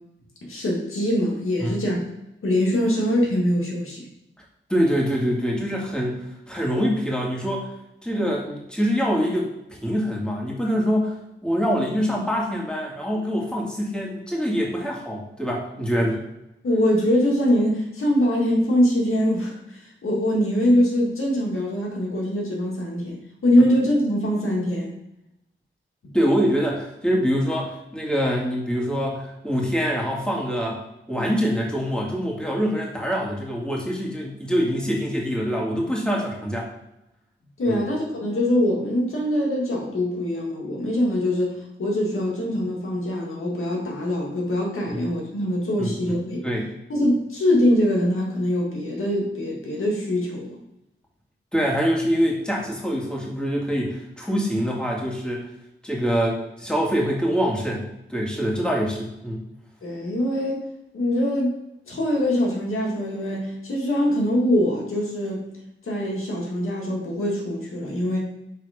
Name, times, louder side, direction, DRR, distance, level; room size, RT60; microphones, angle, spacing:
voice 1, 0.4-2.0 2.4-4.1 16.6-23.2 23.4-24.9 26.0-26.1 37.6-46.4 46.9-50.6 59.8-60.6 60.9-61.6 61.9-65.5 65.8-68.2, left 1 dB, 85° left, -1 dB, 1.9 m, -23 dB
voice 2, 4.7-7.7 8.0-9.5 9.8-11.1 11.4-16.2 26.1-30.8 31.1-36.7 37.7-37.8 44.9-45.0 45.8-46.2 46.4-46.7 51.5-55.4 55.8-59.4, equal, 5° left, -2 dB, 2.1 m, -24 dB
6.9 x 3.7 x 5.0 m, 0.87 s
cardioid pair, 55°, 21 cm